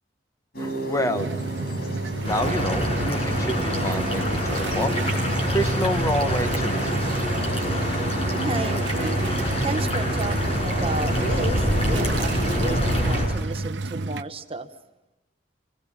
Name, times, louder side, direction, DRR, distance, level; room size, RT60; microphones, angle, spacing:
sound 1, 0.5-13.2, equal, 60° left, 5.1 m, -33 dB
voice 1, 0.6-1.3 2.2-5.0 5.5-7.2, equal, 20° left, 8 dB, 1.1 m, -28 dB
sound 2, 1.1-14.2, right 3 dB, 85° right, 0.9 m, -30 dB
sound 3, 2.3-13.3, equal, 35° left, 6.6 m, -26 dB
voice 2, 8.4-9.2 9.6-14.7, right 2 dB, 30° right, 8 dB, 1.3 m, -33 dB
27.0 x 20.0 x 7.5 m, 0.93 s
head